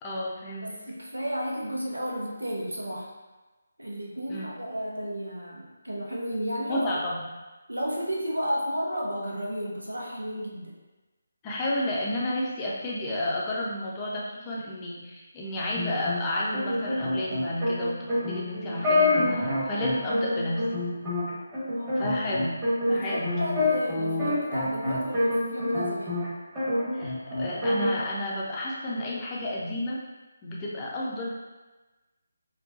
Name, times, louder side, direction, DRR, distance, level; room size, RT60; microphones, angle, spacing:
voice 1, 0.0-0.7 4.3-4.5 6.7-7.3 11.4-20.6 22.0-22.5 22.9-23.5 26.9-30.0 30.4-31.3, left 1 dB, 15° left, -5 dB, 0.5 m, -31 dB
voice 2, 0.6-3.1 3.8-6.8 7.7-10.7 21.7-22.0 22.9-26.2, equal, 75° right, -2 dB, 0.6 m, -32 dB
sound 1, 15.7-26.3 26.5-27.9, left 2 dB, 15° right, 1.1 m, -27 dB
4.3 x 2.2 x 2.6 m, 1.2 s
figure-of-eight pair, 150°, 0 cm